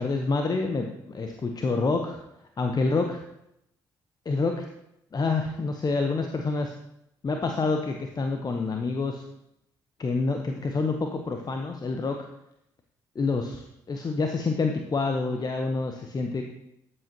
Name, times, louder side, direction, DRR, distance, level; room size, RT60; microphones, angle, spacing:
voice 1, 0.0-2.2 2.6-3.2 4.2-4.6 5.1-6.7 7.2-9.3 10.0-12.2 13.1-16.4, left 3 dB, 35° left, 4 dB, 1.0 m, -27 dB
13.5 x 7.9 x 3.0 m, 0.79 s
figure-of-eight pair, 40°, 12 cm